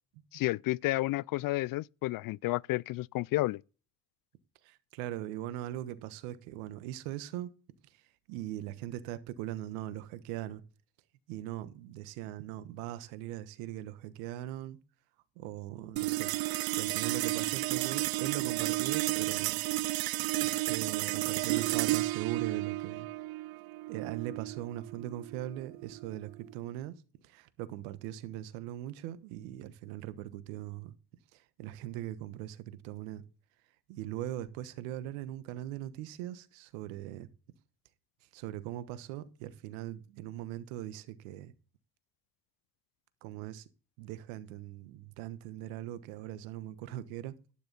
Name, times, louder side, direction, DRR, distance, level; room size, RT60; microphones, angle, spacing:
voice 1, 0.3-3.6, left 18 dB, 55° left, 0.4 m, -31 dB
voice 2, 4.6-7.5 8.3-10.6 11.3-14.8 15.4-16.3 16.7-19.6 20.0-23.1 23.9-26.9 27.2-30.9 31.3-33.2 33.9-37.3 38.3-41.5 43.2-43.7 44.0-47.4, right 13 dB, 85° right, 1.3 m, -40 dB
sound 1, 16.0-26.6, right 19 dB, 60° right, 0.5 m, -32 dB
11.5 x 9.6 x 4.0 m
hypercardioid pair, 60°, 40 cm